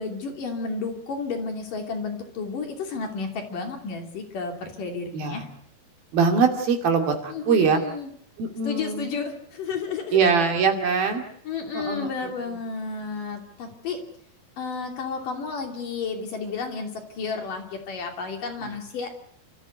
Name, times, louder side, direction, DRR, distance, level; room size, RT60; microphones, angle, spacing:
voice 1, 0.0-5.5 7.3-8.1 8.6-10.2 11.4-14.0 14.6-19.2, left 4 dB, 55° left, 3 dB, 4.2 m, -32 dB
voice 2, 6.1-7.8 8.4-9.1 10.1-11.2 11.7-12.1 18.6-18.7, right 5 dB, 65° right, 4 dB, 4.3 m, -22 dB
30.0 x 14.5 x 8.1 m, 0.70 s
omnidirectional pair, 4.8 m